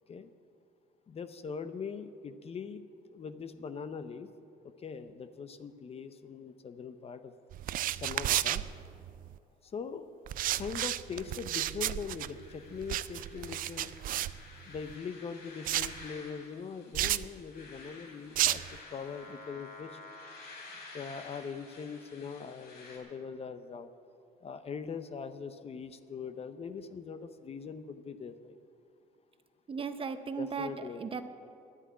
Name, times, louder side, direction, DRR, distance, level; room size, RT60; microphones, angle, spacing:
voice 1, 1.1-2.8 3.1-4.3 4.6-7.3 8.0-8.6 9.6-10.1 10.5-13.9 14.7-20.0 20.9-23.9 24.4-28.6 30.4-31.0, left 6 dB, 35° left, 11 dB, 0.7 m, -41 dB
sound 1, 7.5-9.4 10.3-14.9 15.6-16.0 16.9-17.3 18.4-18.8, right 13 dB, 55° right, 0.4 m, -32 dB
sound 2, 11.5-23.0, left 3 dB, 70° left, 3.3 m, -51 dB
voice 2, 29.7-30.7 31.0-31.2, right 6 dB, 30° right, 9 dB, 0.8 m, -36 dB
10.0 x 9.8 x 9.4 m, 2.5 s
cardioid pair, 110°, 17 cm